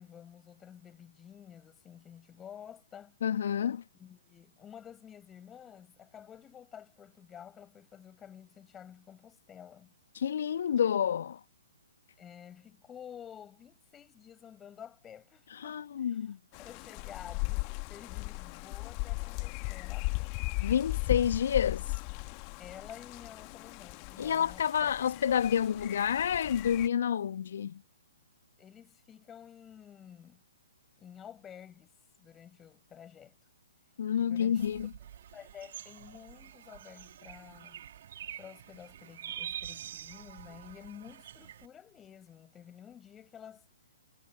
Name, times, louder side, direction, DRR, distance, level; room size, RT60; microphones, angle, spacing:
voice 1, 0.0-3.2 3.9-9.9 12.2-20.4 22.6-24.9 28.6-30.4 31.0-31.9 32.2-33.3 34.1-34.7 35.3-37.8 38.4-43.7, left 9 dB, 15° left, 4.8 m, -51 dB
voice 2, 3.2-3.8 10.1-11.4 15.5-16.4 20.6-22.0 24.2-27.8 34.0-34.9, left 8 dB, 55° left, 1.3 m, -29 dB
sound 1, 16.5-26.9, left 38 dB, 30° left, 1.4 m, -37 dB
sound 2, 34.6-41.7, right 10 dB, 50° right, 1.6 m, -46 dB
figure-of-eight pair, 125°, 0 cm